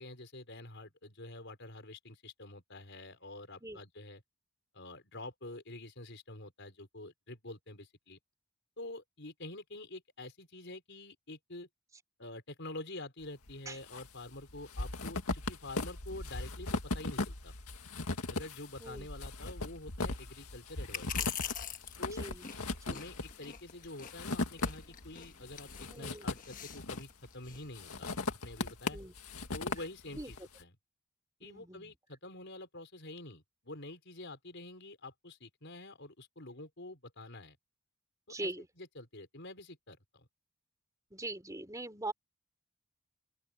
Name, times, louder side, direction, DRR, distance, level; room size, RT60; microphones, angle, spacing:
voice 1, 0.0-4.2 4.7-8.2 8.8-11.7 12.2-17.5 18.3-21.4 22.0-22.3 22.9-29.0 29.5-30.7 31.4-37.6 38.3-38.5 38.8-40.3, left 2 dB, 55° left, 5.2 m, -47 dB
sound 1, 13.5-14.1 14.3-25.1 25.5-27.3 27.8-30.4, left 2 dB, 80° left, 2.0 m, -38 dB
sound 2, 17.7-28.2, left 8 dB, 35° left, 1.3 m, -46 dB
voice 2, 22.1-22.4 22.8-23.0 25.9-26.3 28.9-29.1 30.1-30.3 31.4-31.9 38.3-38.7 41.1-42.1, right 2 dB, 15° right, 3.4 m, -42 dB
open air
head